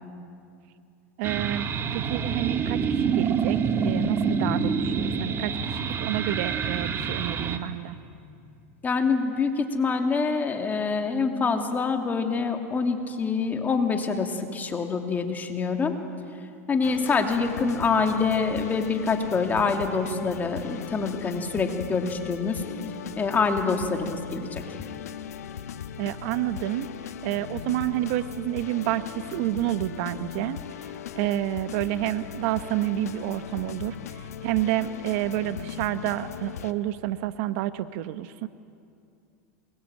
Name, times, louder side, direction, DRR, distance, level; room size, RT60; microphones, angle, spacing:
sound 1, 1.2-7.6, right 5 dB, 30° right, 1.8 m, -27 dB
voice 1, 1.2-8.0 26.0-38.5, right 14 dB, 60° right, 12 dB, 1.0 m, -29 dB
voice 2, 8.8-16.0 16.7-22.6 23.2-24.6, left 4 dB, 20° left, 4 dB, 2.9 m, -26 dB
sound 2, 16.8-36.7, left 9 dB, 85° left, 1.3 m, -38 dB
27.5 x 22.0 x 9.1 m, 2.5 s
hypercardioid pair, 115°, 8 cm